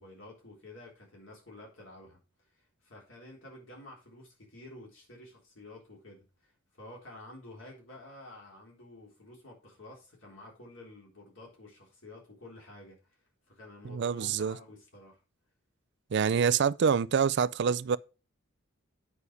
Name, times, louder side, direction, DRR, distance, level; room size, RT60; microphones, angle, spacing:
voice 1, 0.0-2.2 2.5-13.0 13.5-15.2, left 1 dB, 65° left, 3.7 m, -50 dB
voice 2, 13.8-14.6 16.1-18.0, right 6 dB, 55° right, 0.4 m, -26 dB
8.3 x 5.6 x 4.8 m
head